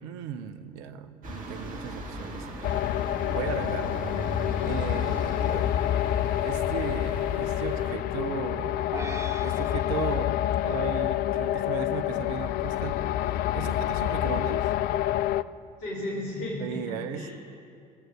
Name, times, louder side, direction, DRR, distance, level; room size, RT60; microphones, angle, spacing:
voice 1, 0.0-2.8 3.3-4.2 4.6-5.8 6.4-8.9 9.4-13.0 13.5-14.7 16.6-17.4, right 8 dB, 65° right, 11 dB, 0.7 m, -36 dB
sound 1, 1.2-8.0, right 1 dB, 45° right, 1.8 m, -38 dB
sound 2, 2.6-15.4, left 12 dB, 50° left, 0.4 m, -27 dB
sound 3, 8.9-11.4, right 2 dB, 15° right, 0.7 m, -42 dB
voice 2, 15.8-17.4, left 1 dB, 65° left, -4 dB, 3.2 m, -34 dB
21.5 x 7.9 x 6.2 m, 2.4 s
figure-of-eight pair, 55°, 20 cm